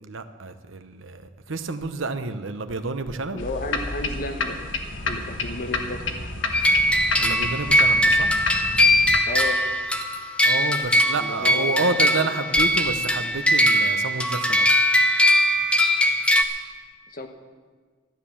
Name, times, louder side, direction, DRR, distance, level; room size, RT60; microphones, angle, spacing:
voice 1, 0.0-3.4 7.2-8.3 10.4-14.9, right 3 dB, 80° right, 10 dB, 0.9 m, -29 dB
voice 2, 3.3-4.6 5.0-6.0 9.3-9.6 11.2-12.3 17.1-17.3, left 2 dB, 45° left, 6 dB, 1.2 m, -32 dB
sound 1, 3.4-9.2, left 3 dB, 70° left, 1.3 m, -30 dB
sound 2, 6.5-16.4, equal, 5° left, 0.7 m, -20 dB
12.5 x 10.5 x 7.2 m, 1.5 s
head